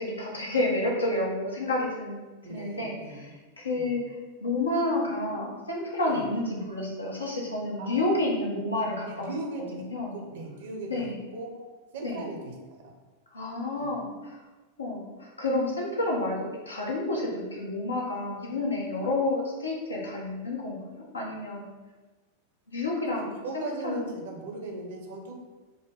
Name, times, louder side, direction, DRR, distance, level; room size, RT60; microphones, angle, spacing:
voice 1, 0.0-4.1 4.4-9.3 9.9-10.1 10.9-11.1 12.0-12.2 13.3-14.3 14.8-21.7 22.7-24.0, left 2 dB, 75° left, -2 dB, 0.9 m, -30 dB
voice 2, 2.4-3.3 3.7-4.0 6.0-6.3 7.8-8.1 9.1-11.7 11.9-12.5 12.8-12.9 13.8-13.9 23.2-25.3, right 2 dB, 60° right, 2 dB, 0.8 m, -38 dB
4.9 x 2.2 x 3.7 m, 1.2 s
figure-of-eight pair, 90°, 0 cm